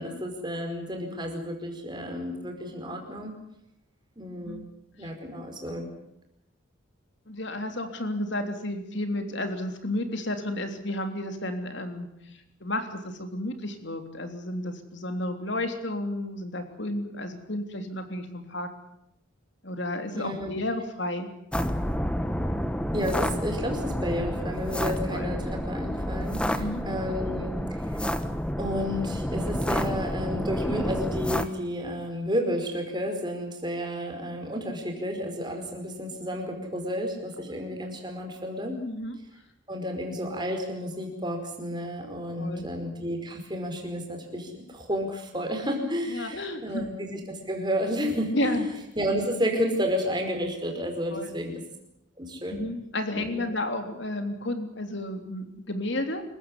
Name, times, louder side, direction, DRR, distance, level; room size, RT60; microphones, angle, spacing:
voice 1, 0.0-3.3 4.2-4.7 5.0-5.9 20.1-20.5 22.9-28.0 28.6-38.8 39.7-47.2 47.5-48.7 49.0-51.6 52.2-52.6 53.1-53.5, equal, 20° right, 3 dB, 5.0 m, -31 dB
voice 2, 7.3-18.7 19.6-21.3 24.9-25.3 26.5-26.8 38.9-39.2 42.4-42.7 46.1-46.9 48.3-48.7 51.1-51.4 52.5-56.2, left 1 dB, 55° left, 7 dB, 3.3 m, -32 dB
sound 1, 21.5-31.5, equal, 5° left, 1.2 m, -29 dB
27.0 x 15.0 x 9.9 m, 0.78 s
head